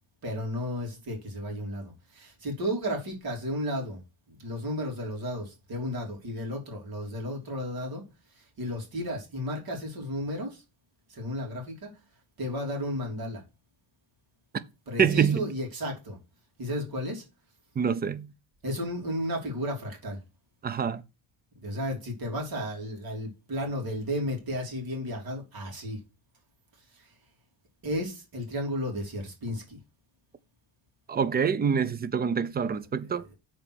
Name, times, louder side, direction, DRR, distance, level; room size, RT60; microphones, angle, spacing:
voice 1, 0.2-4.0 4.3-8.0 8.4-10.6 11.1-11.9 12.4-13.4 14.9-16.2 16.6-17.2 18.6-20.2 21.6-26.0 26.9-27.1 27.8-29.8, equal, 45° right, 3.2 m, -33 dB
voice 2, 15.0-15.5 17.8-18.3 20.6-21.0 31.1-33.2, right 7 dB, 20° right, 0.5 m, -26 dB
7.1 x 4.4 x 6.2 m
cardioid pair, 140°, 49 cm